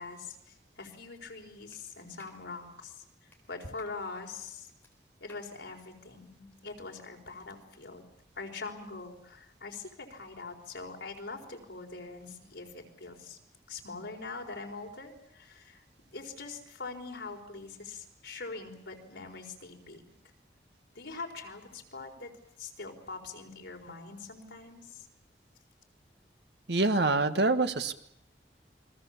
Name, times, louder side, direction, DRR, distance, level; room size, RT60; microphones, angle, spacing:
voice 1, 0.0-4.7 5.2-8.1 8.4-13.4 13.7-15.8 16.1-20.0 20.9-22.3 22.6-25.1, left 3 dB, 90° left, 2 dB, 4.4 m, -43 dB
Clapping, 1.7-1.8 2.2-2.4 3.3-3.4 3.8-4.0 4.8-4.9 5.3-5.5, left 2 dB, 10° left, 4.5 m, -56 dB
voice 2, 26.7-27.9, right 3 dB, 75° right, 9 dB, 1.5 m, -25 dB
29.0 x 22.0 x 7.2 m, 0.72 s
head